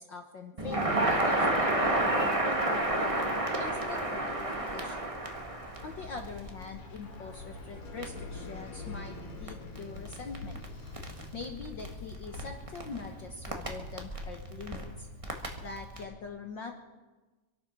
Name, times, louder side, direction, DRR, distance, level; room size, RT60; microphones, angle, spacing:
voice 1, 0.0-5.0 5.8-10.6 11.3-15.1 15.6-16.7, left 4 dB, 60° left, 3 dB, 1.2 m, -43 dB
Crackle, 0.6-16.0, right 1 dB, 20° right, 0.8 m, -32 dB
sound 1, 5.8-15.1, left 3 dB, 85° left, 4.5 m, -46 dB
26.0 x 8.9 x 6.2 m, 1.2 s
omnidirectional pair, 3.7 m